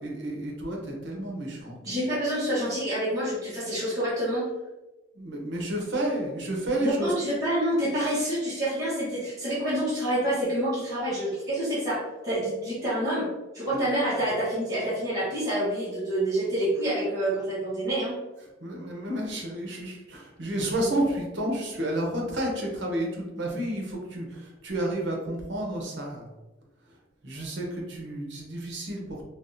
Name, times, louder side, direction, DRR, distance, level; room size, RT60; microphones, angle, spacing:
voice 1, 0.0-1.8 5.1-7.1 13.7-13.8 18.6-26.3 27.2-29.2, right 1 dB, 65° right, -1 dB, 0.8 m, -31 dB
voice 2, 1.8-4.5 6.8-13.3 13.5-18.2, right 1 dB, 20° right, -11 dB, 1.0 m, -27 dB
3.4 x 2.3 x 2.6 m, 1.1 s
head